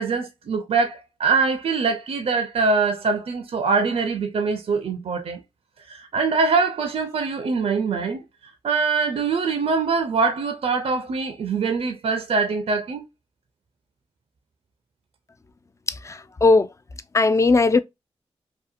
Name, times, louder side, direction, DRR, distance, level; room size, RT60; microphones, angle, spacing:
voice 1, 0.0-5.4 5.9-8.2 8.6-13.0, right 4 dB, 65° right, 0.4 m, -23 dB
voice 2, 15.9-16.7 17.1-17.8, left 3 dB, 25° left, 0.3 m, -18 dB
2.7 x 2.1 x 2.4 m
cardioid pair, 55°, 11 cm